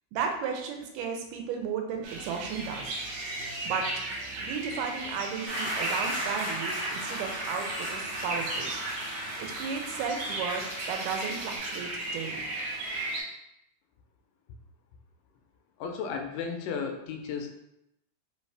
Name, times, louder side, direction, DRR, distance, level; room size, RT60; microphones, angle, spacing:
voice 1, 0.1-2.9 3.7-3.9 4.4-8.7 9.4-12.4, right 6 dB, 85° right, 3 dB, 2.2 m, -34 dB
sound 1, 2.0-13.2, right 2 dB, 65° right, 2.2 m, -36 dB
sound 2, 5.5-11.6, equal, 35° right, 0.7 m, -36 dB
voice 2, 15.8-17.6, left 6 dB, 80° left, 4 dB, 2.0 m, -34 dB
5.1 x 2.7 x 3.3 m, 0.84 s
omnidirectional pair, 3.7 m